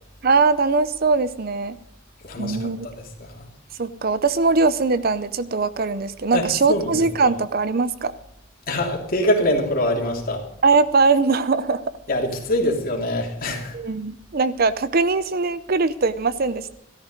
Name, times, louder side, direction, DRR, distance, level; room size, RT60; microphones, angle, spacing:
voice 1, 0.2-1.8 2.4-2.9 3.8-8.1 10.6-11.8 13.7-16.7, right 4 dB, 45° right, 15 dB, 0.6 m, -21 dB
voice 2, 2.2-3.5 6.3-7.3 8.7-10.4 12.1-13.8, left 1 dB, 45° left, 1 dB, 3.1 m, -24 dB
14.0 x 13.0 x 5.2 m, 0.78 s
head